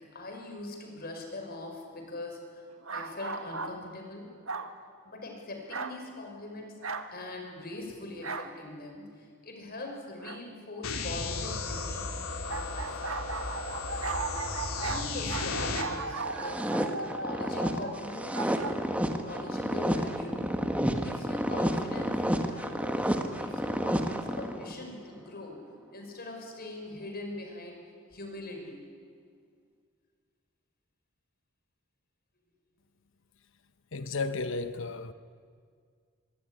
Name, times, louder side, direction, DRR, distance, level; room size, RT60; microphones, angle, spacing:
voice 1, 0.0-4.3 5.0-13.2 13.9-16.7 17.0-20.4 20.9-27.8 28.1-28.9, left 2 dB, 45° left, 5.8 m, -42 dB
sound 1, 2.8-3.8 4.5-4.8 5.7-6.0 6.8-7.1 8.2-8.5 10.2-10.4 12.5-18.7, right 3 dB, 70° right, 1.7 m, -36 dB
sound 2, 10.8-15.8, left 3 dB, 80° left, 3.2 m, -35 dB
sound 3, 16.2-24.8, equal, 5° right, 1.6 m, -30 dB
voice 2, 33.9-35.1, left 3 dB, 65° left, 1.0 m, -33 dB
24.5 x 23.5 x 9.9 m
head